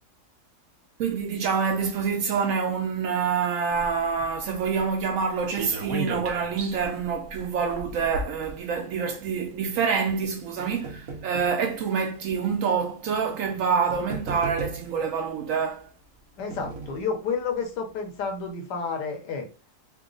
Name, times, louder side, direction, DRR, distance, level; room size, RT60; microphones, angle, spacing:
voice 1, 1.0-15.9, right 6 dB, 80° right, 0.7 m, -26 dB
sound 1, 3.7-9.2 10.0-11.6 12.4-12.5 13.5-13.6 13.9-15.1 16.0-17.1 17.6-17.7 17.9-18.0, right 3 dB, 60° right, 1.2 m, -37 dB
voice 2, 16.4-19.5, left 5 dB, 75° left, 1.5 m, -30 dB
4.1 x 2.1 x 3.8 m
omnidirectional pair, 1.9 m